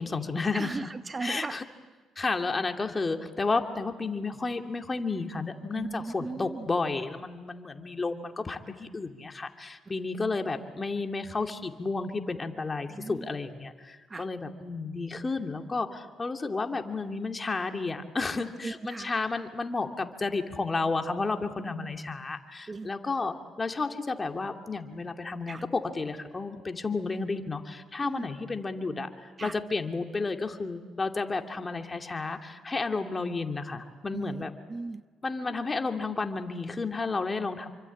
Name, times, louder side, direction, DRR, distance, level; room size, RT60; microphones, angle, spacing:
voice 1, 0.0-0.7 1.2-1.6 2.2-25.6 26.0-34.5 35.2-37.7, left 3 dB, 30° left, 4 dB, 2.7 m, -32 dB
voice 2, 0.5-1.6 5.7-6.7 12.9-13.3 14.1-14.3 18.6-19.1 22.7-22.9 25.5-25.6 28.0-28.3 29.4-29.6 34.1-35.1, right 3 dB, 30° right, 12 dB, 0.9 m, -37 dB
28.0 x 25.0 x 8.6 m, 1.4 s
hypercardioid pair, 55°, 0 cm